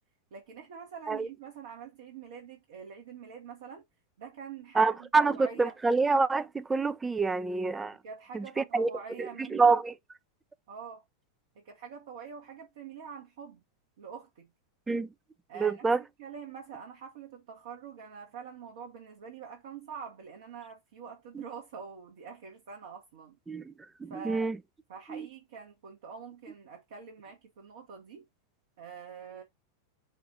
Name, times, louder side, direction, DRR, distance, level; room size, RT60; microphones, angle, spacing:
voice 1, 0.3-3.8 4.2-5.8 8.0-9.8 10.7-11.0 11.5-13.6 14.0-14.5 15.5-23.4 24.1-24.5 24.9-28.3 28.8-29.4, right 6 dB, 55° right, 1.0 m, -45 dB
voice 2, 4.8-5.3 5.6-8.0 8.3-8.9 9.5-9.9 14.9-15.1 15.6-16.0 21.4-21.5 23.5-23.7 24.0-24.6 25.1-25.3, right 4 dB, 10° right, 0.4 m, -26 dB
5.0 x 2.4 x 4.1 m
figure-of-eight pair, 90°, 0 cm